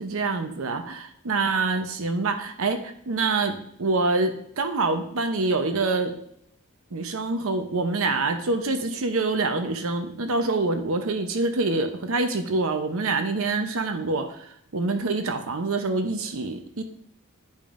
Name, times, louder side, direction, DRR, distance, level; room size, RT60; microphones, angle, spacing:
voice 1, 0.0-6.1 6.9-16.8, right 3 dB, 70° right, 6 dB, 0.8 m, -26 dB
10.5 x 5.2 x 2.6 m, 0.68 s
head